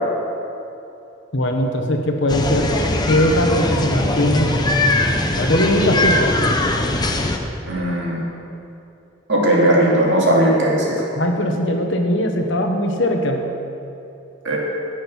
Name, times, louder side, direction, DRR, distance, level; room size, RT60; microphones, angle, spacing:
voice 1, 1.3-2.7 3.1-4.5 5.4-6.4 11.1-13.4, left 1 dB, 60° left, 3 dB, 1.3 m, -20 dB
sound 1, 2.3-7.4, left 2 dB, 20° left, 0.8 m, -20 dB
voice 2, 7.6-8.2 9.3-11.0 14.4-14.6, right 1 dB, 60° right, -3 dB, 2.6 m, -17 dB
16.0 x 6.4 x 6.2 m, 2.8 s
head